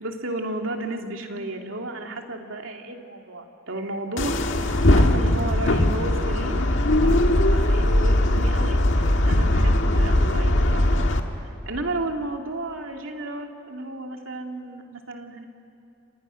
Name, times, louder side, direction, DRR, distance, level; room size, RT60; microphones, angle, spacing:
voice 1, 0.0-6.7 7.0-8.8 9.2-11.0 11.4-15.4, right 2 dB, 75° right, 3 dB, 2.6 m, -33 dB
sound 1, 4.2-11.2, left 1 dB, 65° left, 1.7 m, -20 dB
29.0 x 27.0 x 6.4 m, 2.7 s
head